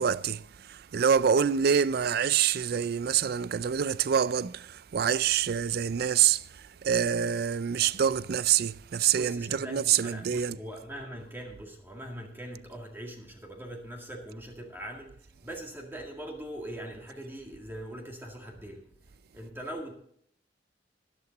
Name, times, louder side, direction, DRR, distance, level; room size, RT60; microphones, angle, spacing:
voice 1, 0.0-10.6, right 8 dB, 60° right, 0.4 m, -26 dB
voice 2, 9.1-18.8 19.3-19.9, right 1 dB, 15° right, 2.0 m, -41 dB
12.5 x 11.5 x 4.0 m
head